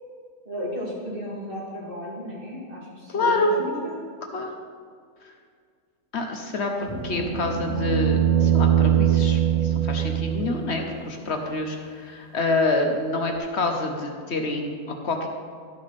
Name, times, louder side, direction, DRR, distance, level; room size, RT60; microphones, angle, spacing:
voice 1, 0.4-4.1, left 1 dB, 35° right, -6 dB, 2.7 m, -34 dB
voice 2, 3.1-3.6 4.3-4.5 5.2-5.3 6.1-15.3, left 2 dB, 55° left, 3 dB, 1.0 m, -27 dB
sound 1, 6.8-11.0 13.4-13.5, right 10 dB, 85° right, 1.2 m, -22 dB
sound 2, 6.9-10.4, left 2 dB, 20° left, 2.1 m, -37 dB
12.5 x 6.4 x 4.1 m, 2.1 s
omnidirectional pair, 1.5 m